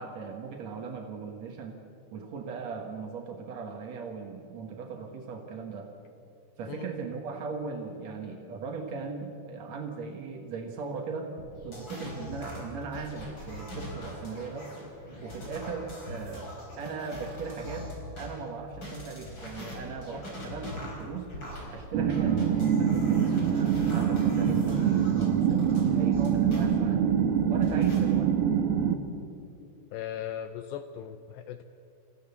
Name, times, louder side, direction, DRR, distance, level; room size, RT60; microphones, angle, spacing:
voice 1, 0.0-1.8 2.1-5.9 6.6-11.3 11.6-14.7 15.2-17.9 18.2-21.3 21.7-27.1 27.5-28.4, right 5 dB, 90° right, 3 dB, 1.5 m, -38 dB
sound 1, 11.4-18.3 18.7-26.6 27.1-28.0, left 1 dB, 25° left, 4.6 m, -42 dB
sound 2, 21.9-29.0, right 8 dB, 70° right, 2.6 m, -25 dB
voice 2, 29.9-31.6, left 10 dB, 85° left, 9 dB, 2.5 m, -38 dB
27.0 x 15.5 x 7.1 m, 2.5 s
omnidirectional pair, 5.6 m